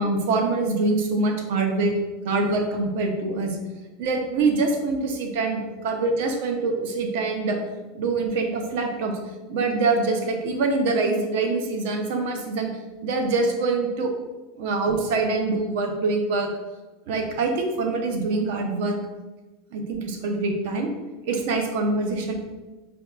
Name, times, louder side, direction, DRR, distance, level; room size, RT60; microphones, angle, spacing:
voice 1, 0.0-2.0 2.2-3.6 4.0-7.6 7.9-9.2 9.5-12.7 13.0-14.1 14.6-16.5 17.1-19.0 19.7-20.9 21.3-22.3, right 3 dB, 70° right, 3 dB, 0.6 m, -24 dB
5.1 x 2.3 x 2.3 m, 1.2 s
supercardioid pair, 145°, 0 cm